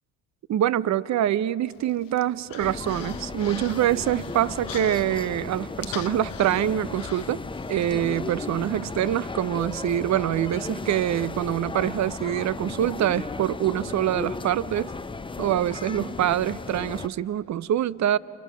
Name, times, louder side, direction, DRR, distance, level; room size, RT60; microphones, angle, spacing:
voice 1, 0.5-7.4 7.7-14.9 15.4-18.2, right 11 dB, 40° right, 19 dB, 0.7 m, -25 dB
Human voice, 1.7-7.9, left 12 dB, 50° left, 0.8 m, -43 dB
sound 1, 2.6-17.1, left 3 dB, 10° left, 0.7 m, -35 dB
29.0 x 24.0 x 5.0 m, 2.8 s
hypercardioid pair, 50°, 43 cm